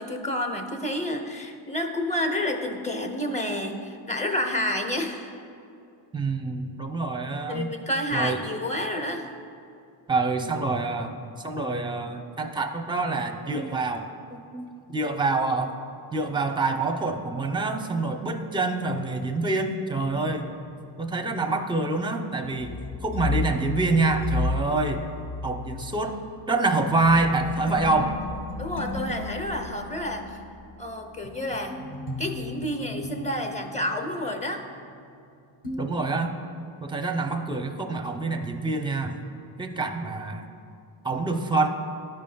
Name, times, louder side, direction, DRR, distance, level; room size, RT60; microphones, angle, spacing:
voice 1, 0.0-5.3 7.5-9.3 28.6-30.4 30.8-31.8 32.2-34.7, left 1 dB, 15° left, 4 dB, 0.8 m, -29 dB
voice 2, 6.1-7.7 8.1-8.4 10.1-14.1 14.5-15.7 16.1-20.5 21.0-25.0 25.4-26.2 26.5-28.2 35.8-36.3 36.8-39.1 39.6-40.5 41.0-41.7, right 3 dB, 10° right, 6 dB, 0.5 m, -26 dB
sound 1, 20.0-35.3 35.6-35.8, left 2 dB, 45° left, 1.3 m, -35 dB
12.0 x 5.1 x 2.3 m, 2.5 s
cardioid pair, 70°, 50 cm